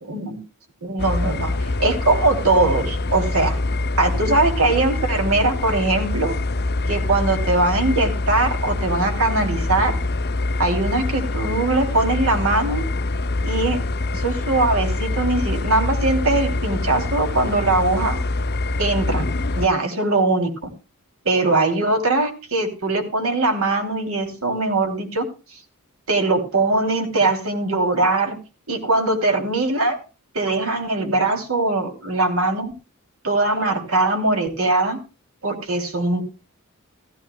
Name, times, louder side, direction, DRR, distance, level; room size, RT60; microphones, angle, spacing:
voice 1, 0.0-0.4 0.8-1.5 1.8-3.6 4.0-6.3 6.9-9.9 10.6-12.8 13.4-13.8 14.1-18.2 18.8-19.3 19.5-20.7 21.2-25.3 26.1-28.4 28.7-30.0 30.3-32.7 33.2-35.0 35.4-36.2, right 2 dB, 75° right, 4 dB, 3.1 m, -21 dB
sound 1, 1.0-19.7, left 2 dB, 50° left, 0.7 m, -25 dB
15.0 x 14.5 x 2.3 m, 0.31 s
head